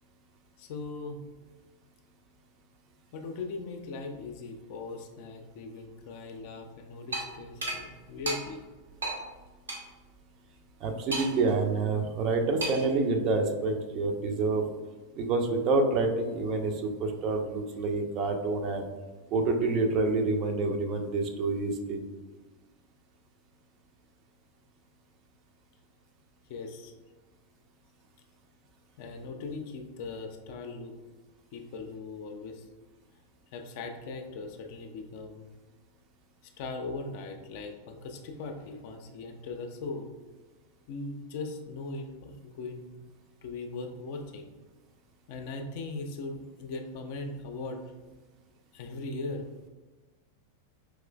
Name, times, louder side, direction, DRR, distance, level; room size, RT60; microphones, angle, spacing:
voice 1, 0.6-1.3 3.1-8.6 26.5-26.9 29.0-30.9 31.5-32.6 33.5-35.5 36.6-40.1 40.9-42.8 43.4-44.5 45.3-47.8 48.7-49.5, left 3 dB, 50° left, 5 dB, 0.4 m, -39 dB
sound 1, 7.1-7.3 7.6-7.8 8.3-8.4 9.0-9.2 9.7-9.8 11.1-11.5 12.6-12.9, right 2 dB, 70° right, 0.7 m, -32 dB
voice 2, 10.8-14.6 15.2-18.9 19.3-22.0, right 3 dB, 35° right, 4 dB, 0.5 m, -27 dB
4.7 x 3.0 x 2.3 m, 1.3 s
figure-of-eight pair, 90°, 0 cm